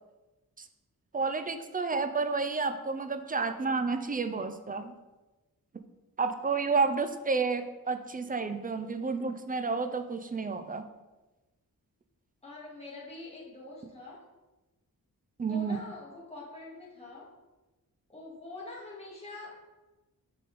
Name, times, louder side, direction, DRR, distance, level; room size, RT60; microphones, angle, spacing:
voice 1, 1.1-4.9 6.2-10.8 15.4-15.8, right 4 dB, 25° right, 8 dB, 0.4 m, -30 dB
voice 2, 12.4-14.3 15.5-17.3 18.1-19.5, left 2 dB, 15° left, -6 dB, 1.8 m, -45 dB
7.4 x 4.2 x 4.0 m, 1.1 s
wide cardioid pair, 135°, 37 cm